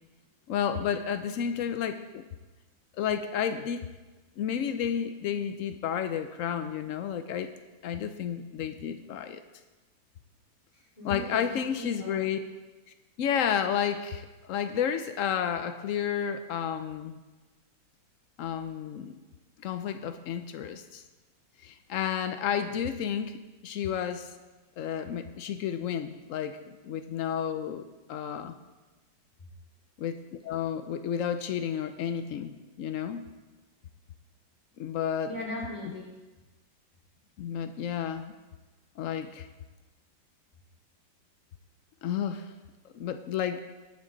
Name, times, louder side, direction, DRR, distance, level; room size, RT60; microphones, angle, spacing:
voice 1, 0.5-2.2 2.9-3.9 4.4-7.5 7.8-9.4 11.0-12.4 13.2-17.2 18.4-19.2 19.6-21.0 21.6-24.4 24.8-28.6 30.0-33.3 34.8-35.3 37.4-38.3 39.0-39.5 42.0-42.5 42.9-43.6, left 8 dB, 85° left, 9 dB, 0.7 m, -31 dB
voice 2, 10.7-12.2 35.3-36.1, left 1 dB, 15° left, -4 dB, 3.9 m, -39 dB
19.0 x 7.2 x 3.9 m, 1.2 s
omnidirectional pair, 2.1 m